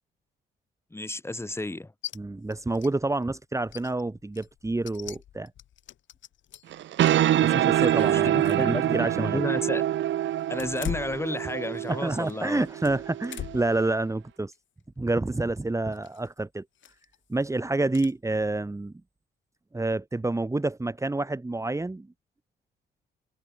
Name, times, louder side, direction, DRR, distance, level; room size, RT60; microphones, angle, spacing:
voice 1, 0.9-1.9 7.9-9.8 10.5-12.7, left 2 dB, 10° left, 3.9 m, -32 dB
sound 1, 2.0-2.2 2.5-2.9 3.2-3.3 3.7-6.8 7.4-8.7 9.0-9.1 10.5-11.9 12.2-13.8 14.2-14.6 15.9-16.3 16.8-17.2 17.9-18.1, left 11 dB, 70° left, 4.1 m, -41 dB
voice 2, 2.1-5.5 7.4-9.4 11.9-14.5 15.0-16.6 17.3-18.9 19.7-22.1, right 2 dB, 15° right, 2.8 m, -28 dB
sound 2, 6.7-13.9, right 12 dB, 70° right, 1.4 m, -26 dB
cardioid pair, 90°, 20 cm